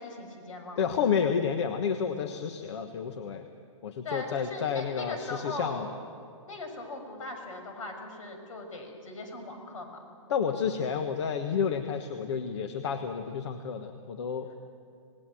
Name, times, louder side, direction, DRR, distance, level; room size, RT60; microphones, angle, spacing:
voice 1, 0.0-0.8 4.0-5.9 6.5-10.0, left 2 dB, 75° left, 5 dB, 6.1 m, -39 dB
voice 2, 0.8-3.5 3.8-5.9 10.3-14.5, left 7 dB, 55° left, 7 dB, 1.4 m, -30 dB
27.5 x 19.0 x 7.8 m, 2.4 s
hypercardioid pair, 155°, 17 cm